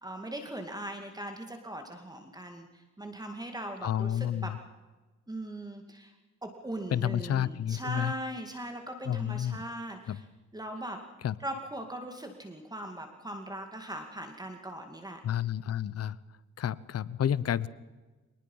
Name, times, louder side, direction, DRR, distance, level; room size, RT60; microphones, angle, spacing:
voice 1, 0.0-4.5 5.3-6.1 6.4-10.3 10.5-11.0 11.4-15.2, right 1 dB, 15° right, 4 dB, 2.3 m, -40 dB
voice 2, 3.8-4.6 6.9-8.1 9.0-9.6 10.1-10.2 11.2-11.3 15.2-16.2 16.6-17.7, left 10 dB, 55° left, 19 dB, 0.9 m, -30 dB
25.0 x 19.5 x 5.6 m, 1.2 s
cardioid pair, 90°, 30 cm